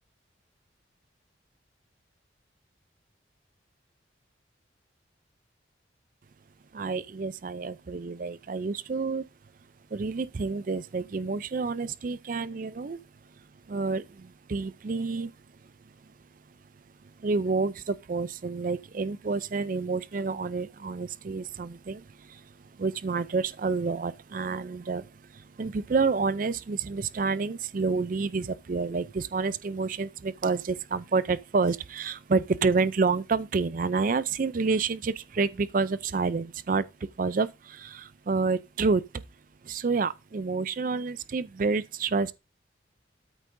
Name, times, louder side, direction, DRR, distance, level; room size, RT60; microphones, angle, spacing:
voice 1, 6.7-9.2 9.9-13.0 13.7-15.3 17.2-22.0 22.8-25.1 25.6-36.8 37.2-39.0 39.7-42.3, right 4 dB, 45° right, 0.4 m, -28 dB
13.0 x 9.9 x 2.6 m
head